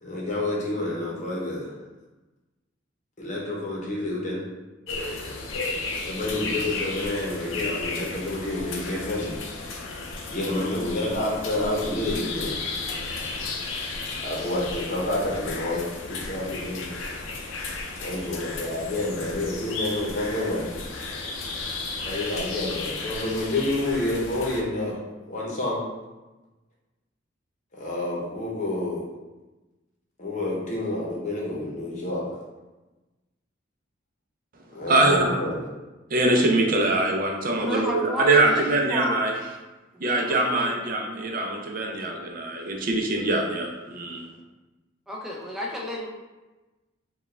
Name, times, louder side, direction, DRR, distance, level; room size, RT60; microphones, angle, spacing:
voice 1, 0.0-1.7 3.2-4.4 6.0-9.4 10.3-12.6 14.2-16.9 18.0-20.7 22.0-25.0 25.3-25.8 27.7-29.0 30.2-32.2 34.7-35.6, left 1 dB, 40° left, -4 dB, 0.8 m, -29 dB
sound 1, 4.9-24.6, left 3 dB, 85° left, 0.5 m, -34 dB
voice 2, 34.9-35.3 36.1-39.3 40.0-44.2, right 2 dB, 45° right, 1 dB, 0.5 m, -23 dB
voice 3, 37.6-39.2 39.9-40.8 45.1-46.1, left 1 dB, ahead, -3 dB, 0.5 m, -32 dB
4.4 x 2.3 x 3.3 m, 1.1 s
head